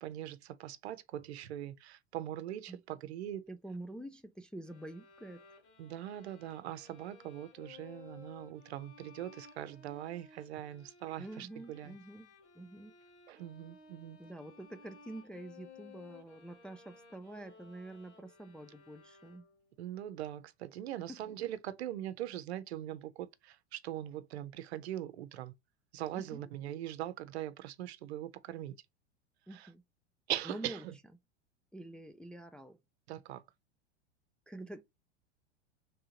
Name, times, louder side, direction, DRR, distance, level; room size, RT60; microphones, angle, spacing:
voice 1, 0.0-3.5 5.8-12.0 13.3-14.2 19.8-25.5 25.9-28.8 29.5-29.7 30.3-30.9 33.1-33.4, right 12 dB, 70° right, 0.7 m, -41 dB
voice 2, 3.5-5.4 11.2-12.3 12.6-13.0 14.2-19.4 21.1-21.2 26.1-26.5 29.5-29.8 30.5-30.8 31.7-32.8 34.5-34.8, right 1 dB, 5° left, 0.4 m, -47 dB
sound 1, 4.6-19.8, left 4 dB, 85° left, 1.8 m, -58 dB
3.7 x 3.5 x 2.8 m
hypercardioid pair, 95°, 33 cm